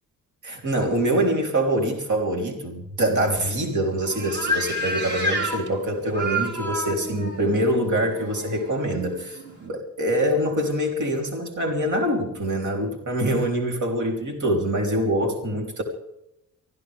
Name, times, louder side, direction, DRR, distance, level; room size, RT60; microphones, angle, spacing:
voice 1, 0.4-15.8, right 1 dB, 60° right, 1 dB, 3.6 m, -24 dB
sound 1, 3.2-9.7, equal, 30° right, 3.6 m, -30 dB
24.5 x 15.5 x 3.5 m, 0.86 s
cardioid pair, 100°, 33 cm